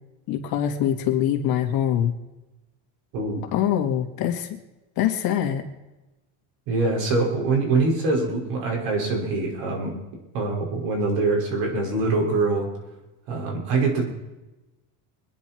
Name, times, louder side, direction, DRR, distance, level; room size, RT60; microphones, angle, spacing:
voice 1, 0.3-2.1 3.5-4.5 5.0-5.6, left 10 dB, 50° left, 3 dB, 2.4 m, -23 dB
voice 2, 6.7-9.9 10.3-12.7 13.3-14.0, right 3 dB, 65° right, 0 dB, 6.0 m, -24 dB
24.5 x 10.5 x 4.6 m, 1.0 s
cardioid pair, 145°, 47 cm